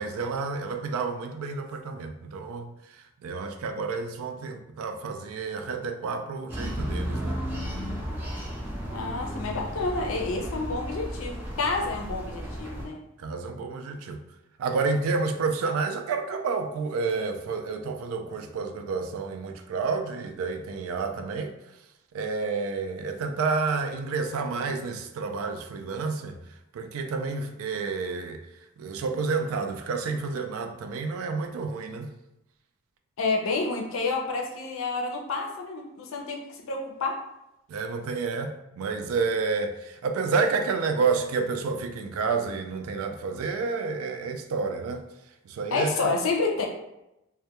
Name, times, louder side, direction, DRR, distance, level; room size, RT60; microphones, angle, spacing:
voice 1, 0.0-7.4 13.2-14.2 14.6-21.5 22.1-26.4 26.7-32.1 37.7-45.0 45.4-46.1, right 4 dB, 85° right, 7 dB, 0.3 m, -30 dB
sound 1, 6.5-12.8, equal, 10° right, 0.5 m, -34 dB
voice 2, 8.9-13.0 33.2-36.4 36.7-37.2 45.7-46.7, left 3 dB, 70° left, 2 dB, 0.4 m, -29 dB
2.2 x 2.1 x 2.8 m, 0.88 s
head